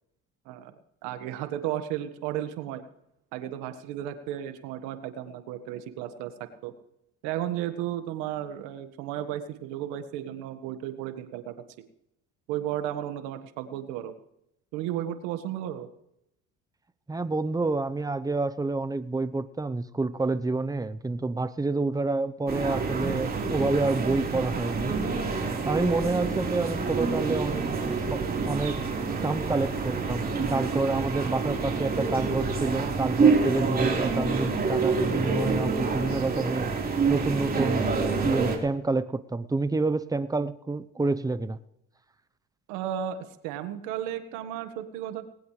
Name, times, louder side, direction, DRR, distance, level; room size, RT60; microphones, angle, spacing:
voice 1, 1.0-2.8 3.3-6.3 6.6-6.7 7.2-11.5 12.5-14.1 14.7-15.9 42.7-45.2, right 11 dB, 90° right, 9 dB, 1.6 m, -34 dB
voice 2, 17.1-28.8 29.2-37.9 38.2-41.6, right 3 dB, 10° right, 12 dB, 0.8 m, -28 dB
sound 1, 22.5-38.6, right 4 dB, 30° right, 4.0 m, -27 dB
20.0 x 19.0 x 3.3 m, 0.78 s
cardioid pair, 105°, 30 cm